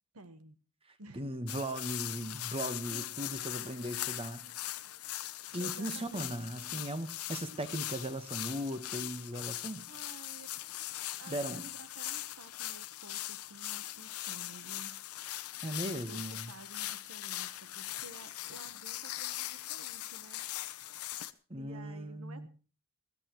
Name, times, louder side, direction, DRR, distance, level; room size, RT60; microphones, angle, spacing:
voice 1, 0.1-0.6 1.0-1.2 2.9-6.3 6.6-6.7 7.5-7.6 9.9-10.5 11.2-15.0 15.8-20.4 21.6-22.5, right 3 dB, 75° right, 1.2 m, -53 dB
voice 2, 1.1-4.4 5.5-9.8 11.3-11.6 15.6-16.5 21.5-22.5, right 1 dB, 25° right, 1.2 m, -38 dB
sound 1, 1.5-21.3, left 14 dB, 80° left, 0.8 m, -40 dB
21.0 x 13.5 x 3.1 m
head